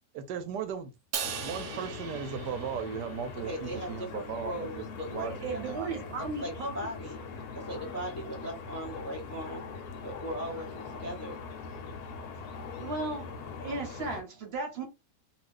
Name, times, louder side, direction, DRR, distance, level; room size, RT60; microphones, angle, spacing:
voice 1, 0.1-0.9 1.4-6.3, right 7 dB, 90° right, 1.2 m, -37 dB
Crash cymbal, 1.1-3.5, right 8 dB, 75° right, 0.6 m, -39 dB
sound 1, 1.2-14.2, left 4 dB, 70° left, 1.1 m, -42 dB
voice 2, 3.4-5.7 6.2-7.3 7.5-9.6 10.0-11.4, equal, 15° left, 0.7 m, -39 dB
voice 3, 5.2-6.9 12.7-13.3 13.6-14.8, right 3 dB, 45° right, 1.1 m, -36 dB
2.8 x 2.4 x 3.4 m
omnidirectional pair, 1.8 m